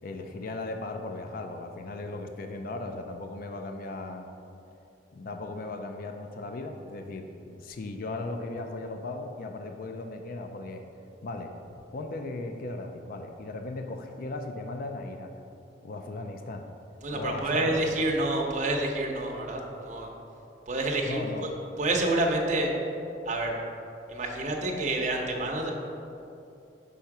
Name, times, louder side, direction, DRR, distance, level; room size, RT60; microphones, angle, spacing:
voice 1, 0.0-4.3 5.1-10.8 11.2-15.3 15.8-16.7 17.1-17.9 21.1-21.5, left 2 dB, 55° left, 5 dB, 0.4 m, -37 dB
voice 2, 17.0-20.1 20.7-21.2 21.8-22.7 23.2-23.5 24.1-25.7, right 2 dB, 45° right, 0 dB, 0.8 m, -28 dB
5.5 x 3.6 x 5.9 m, 2.7 s
head